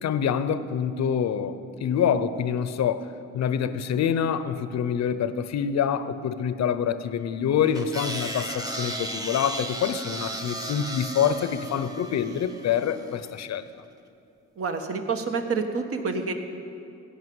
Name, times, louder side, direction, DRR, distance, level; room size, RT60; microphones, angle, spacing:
voice 1, 0.0-3.1 3.3-13.6, left 8 dB, 60° left, 13 dB, 0.7 m, -26 dB
sound 1, 7.7-13.1, right 1 dB, 10° right, 1.2 m, -35 dB
voice 2, 14.6-16.3, right 4 dB, 50° right, 6 dB, 1.3 m, -28 dB
16.0 x 5.8 x 9.4 m, 2.6 s
cardioid pair, 90°, 30 cm